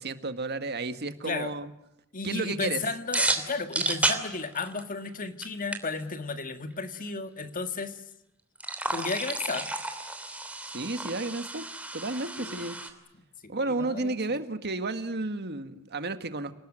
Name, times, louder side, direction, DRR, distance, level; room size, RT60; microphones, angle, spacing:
voice 1, 0.0-1.7 2.2-2.8 10.7-11.6 11.9-12.8 13.5-16.5, right 3 dB, 50° right, 10 dB, 1.7 m, -32 dB
voice 2, 2.1-8.0 8.9-9.7 12.4-12.7 13.4-14.2, left 4 dB, 40° left, 8 dB, 1.9 m, -34 dB
sound 1, 3.1-5.1 5.4-5.5 5.7-5.8 8.6-12.9, right 2 dB, 5° right, 3.0 m, -31 dB
29.0 x 18.5 x 9.0 m, 0.87 s
head